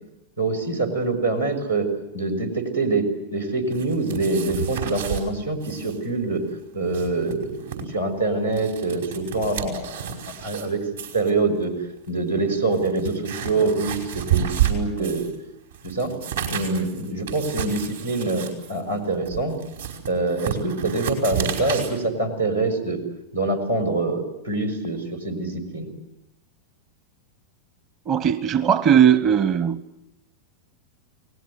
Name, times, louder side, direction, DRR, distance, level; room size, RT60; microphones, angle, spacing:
voice 1, 0.4-1.9 2.1-6.4 6.7-10.1 10.4-10.8 11.1-11.7 12.1-15.3 15.8-16.1 16.5-19.5 20.1-23.0 23.3-25.9, right 3 dB, 90° right, 3 dB, 5.6 m, -25 dB
sound 1, 3.7-5.2 5.6-6.0 6.2-6.3 6.7-7.8 8.3-10.7 11.0-11.3 12.1-12.2 12.7-15.4 15.7-21.9, right 10 dB, 65° right, 5.0 m, -30 dB
voice 2, 28.1-29.8, right 8 dB, 35° right, 15 dB, 0.9 m, -18 dB
29.5 x 19.5 x 8.0 m, 0.90 s
figure-of-eight pair, 90°, 0 cm